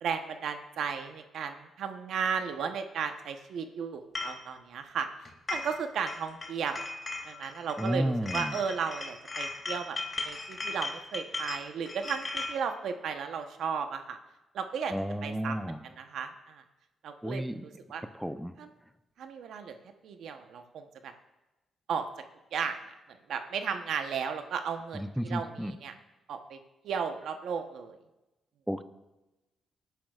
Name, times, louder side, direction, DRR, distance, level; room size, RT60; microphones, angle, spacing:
voice 1, 0.0-5.1 5.5-6.8 7.2-10.0 10.2-14.2 14.5-14.9 15.2-16.6 17.0-18.0 18.6-18.7 19.2-19.8 20.0-21.1 21.9-22.1 22.5-22.8 23.3-25.9 26.3-26.6 26.8-28.0, right 6 dB, 75° right, 7 dB, 0.9 m, -35 dB
sound 1, 4.2-4.4 5.3-5.8 6.1-7.9 8.3-12.6, left 3 dB, 30° left, 2.4 m, -37 dB
voice 2, 7.8-8.5 14.9-15.8 17.2-17.6 18.2-18.6 24.9-25.7 28.7-28.8, equal, ahead, 10 dB, 0.6 m, -32 dB
19.0 x 10.5 x 2.4 m, 1.0 s
cardioid pair, 80°, 0 cm